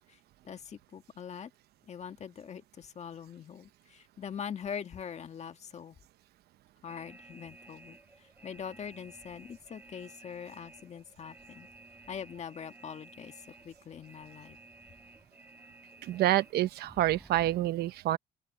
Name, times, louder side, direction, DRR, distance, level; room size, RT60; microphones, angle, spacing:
voice 1, 0.4-1.5 1.9-6.0 6.8-11.7 12.1-14.6, left 7 dB, 40° left, 1.9 m, -43 dB
sound 1, 6.9-17.7, right 2 dB, 10° right, 7.6 m, -54 dB
voice 2, 16.1-18.2, right 14 dB, 70° right, 1.0 m, -27 dB
open air
cardioid pair, 110°, 17 cm